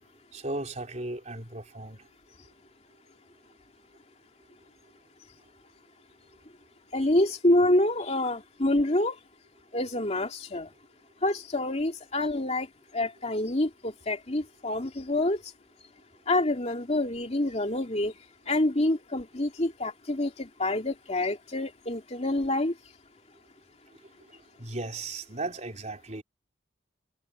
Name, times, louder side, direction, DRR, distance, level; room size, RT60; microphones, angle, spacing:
voice 1, 0.3-2.1 24.3-26.2, right 2 dB, 40° right, 4.6 m, -36 dB
voice 2, 6.9-9.2 9.7-10.7 11.2-12.7 12.9-15.4 16.3-18.1 18.5-22.7, left 1 dB, 35° left, 2.8 m, -27 dB
head